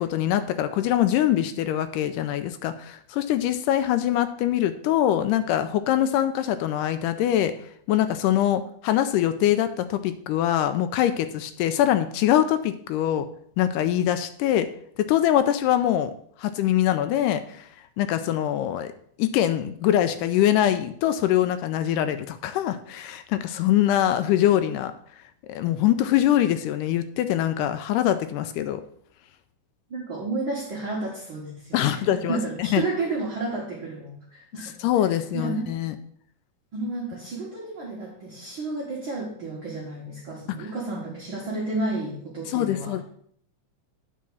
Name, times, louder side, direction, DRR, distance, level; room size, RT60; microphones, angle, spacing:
voice 1, 0.0-7.5 7.9-13.3 13.6-14.7 15.0-16.1 16.4-17.7 18.0-18.9 19.2-24.9 25.5-28.8 31.7-32.8 34.6-36.0 42.5-43.0, left 11 dB, 85° left, 10 dB, 2.1 m, -23 dB
voice 2, 29.9-35.6 36.7-43.0, right 2 dB, 50° right, -4 dB, 1.8 m, -32 dB
8.4 x 4.6 x 6.2 m, 0.63 s
omnidirectional pair, 3.7 m